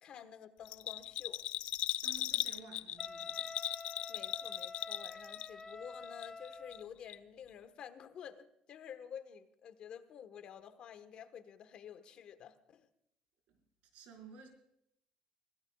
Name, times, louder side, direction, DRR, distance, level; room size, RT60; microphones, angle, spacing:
voice 1, 0.0-1.4 4.1-12.9, left 8 dB, 45° left, 10 dB, 1.2 m, -50 dB
Bell, 0.6-5.7 6.0-6.8 7.1-7.2, left 12 dB, 65° left, 0.5 m, -38 dB
voice 2, 2.0-3.4 13.5-13.6 13.9-14.5, right 5 dB, 80° right, 3 dB, 4.7 m, -54 dB
Wind instrument woodwind instrument, 3.0-6.9, left 3 dB, 15° left, 0.4 m, -48 dB
25.0 x 17.0 x 2.3 m, 0.78 s
cardioid pair, 170°, 2 cm